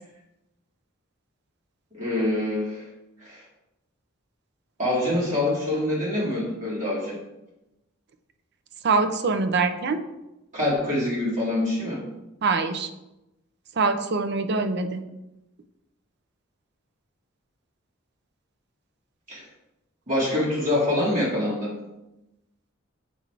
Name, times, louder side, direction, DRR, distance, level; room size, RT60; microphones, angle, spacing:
voice 1, 1.9-2.8 3.2-3.4 4.8-7.2 10.5-12.0 19.3-19.4 20.1-21.7, left 1 dB, 35° right, -7 dB, 2.2 m, -25 dB
voice 2, 8.8-10.0 12.4-12.9 13.8-15.0, right 4 dB, 55° right, 8 dB, 0.5 m, -24 dB
6.7 x 3.9 x 4.7 m, 0.93 s
head